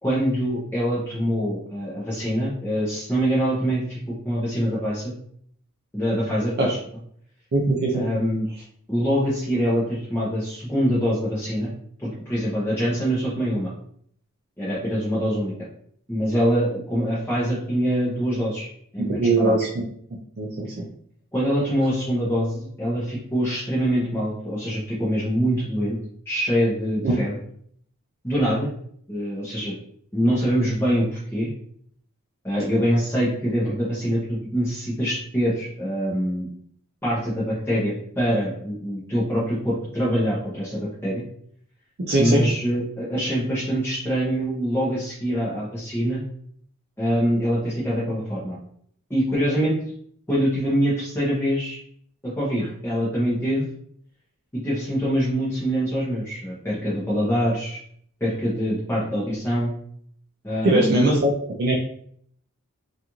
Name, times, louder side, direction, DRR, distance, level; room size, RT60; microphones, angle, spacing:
voice 1, 0.0-5.1 5.9-6.8 7.9-8.5 8.9-11.7 12.0-13.7 14.6-15.7 16.1-18.7 18.9-19.6 21.3-26.0 26.3-27.3 28.2-28.7 29.1-29.7 30.1-31.5 32.4-36.5 37.0-41.2 42.2-46.2 47.0-48.6 49.1-49.8 50.3-51.8 52.2-53.6 54.5-57.8 58.2-59.7 60.4-61.1, equal, 10° left, -8 dB, 0.7 m, -24 dB
voice 2, 7.5-8.0 19.2-19.9 20.4-20.9 27.0-27.2 42.0-42.4 60.6-61.3 61.6-61.8, right 2 dB, 45° right, -2 dB, 0.4 m, -20 dB
2.4 x 2.4 x 2.9 m, 0.64 s
head